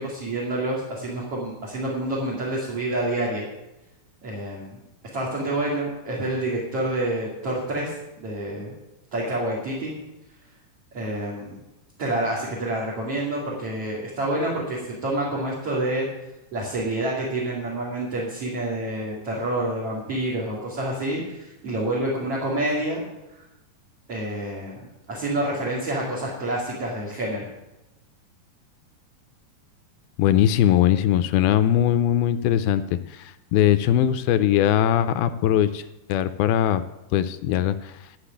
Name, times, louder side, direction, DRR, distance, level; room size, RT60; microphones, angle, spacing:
voice 1, 0.0-3.5 4.2-4.8 5.1-8.7 9.1-9.9 10.9-11.6 12.0-16.1 16.5-23.0 23.3-23.4 24.1-27.5, right 1 dB, 40° right, -5 dB, 3.5 m, -28 dB
voice 2, 30.2-35.8 36.1-36.8 37.1-37.9, left 11 dB, 80° left, 11 dB, 2.4 m, -20 dB
13.5 x 6.7 x 9.9 m, 0.97 s
omnidirectional pair, 4.5 m